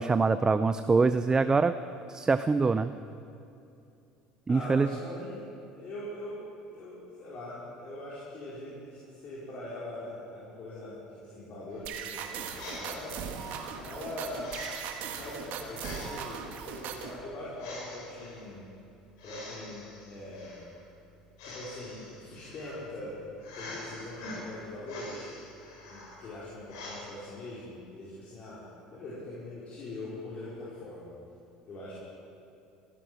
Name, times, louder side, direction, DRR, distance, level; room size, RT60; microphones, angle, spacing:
voice 1, 0.0-1.7 2.1-2.9 4.5-4.9, right 4 dB, 20° right, 11 dB, 0.5 m, -24 dB
voice 2, 4.5-6.4 6.7-13.2 13.7-14.5 15.0-18.6 19.2-20.6 21.4-23.1 23.5-25.3 25.8-28.6 28.9-31.1 31.7-31.9, left 1 dB, 50° left, -8 dB, 4.7 m, -42 dB
sound 1, 11.7-27.0, left 2 dB, 75° left, 4.6 m, -46 dB
sound 2, 11.8-17.2, right 7 dB, 60° right, 1.5 m, -39 dB
16.0 x 11.5 x 6.4 m, 2.6 s
hypercardioid pair, 70°, 3 cm